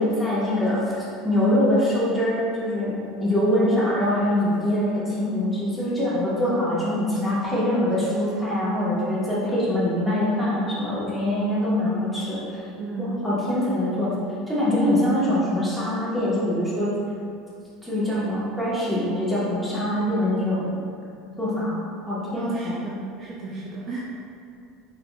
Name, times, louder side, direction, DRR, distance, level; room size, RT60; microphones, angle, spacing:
voice 1, 0.0-2.9 3.2-12.6 13.0-14.1 14.5-16.9 17.8-20.7 21.4-22.7, left 1 dB, ahead, -10 dB, 1.4 m, -24 dB
voice 2, 12.8-13.1 22.4-24.0, right 3 dB, 35° right, -5 dB, 0.5 m, -34 dB
4.0 x 4.0 x 2.4 m, 2.5 s
supercardioid pair, 115°, 0 cm